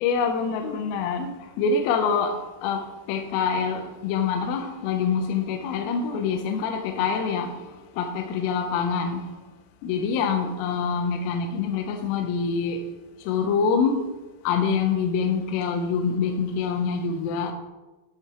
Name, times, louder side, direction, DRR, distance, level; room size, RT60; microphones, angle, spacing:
voice 1, 0.0-1.3 1.6-2.3 2.6-2.8 3.1-7.5 8.0-9.2 9.8-12.8 13.3-14.0 14.5-17.5, left 5 dB, 85° left, 3.2 m, -25 dB
10.0 x 7.9 x 2.9 m
omnidirectional pair, 5.8 m